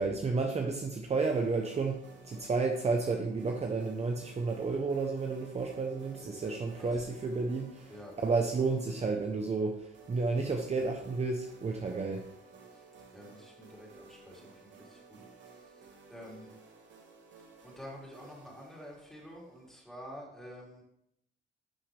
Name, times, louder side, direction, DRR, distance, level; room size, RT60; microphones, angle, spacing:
voice 1, 0.0-7.9 8.2-12.3, right 4 dB, 35° right, 3 dB, 0.9 m, -31 dB
sound 1, 1.2-19.8, right 4 dB, 65° right, 1.8 m, -56 dB
voice 2, 13.1-15.2 16.1-16.5 17.6-20.8, equal, ahead, -3 dB, 3.3 m, -48 dB
11.0 x 5.7 x 3.4 m, 0.77 s
cardioid pair, 90°, 20 cm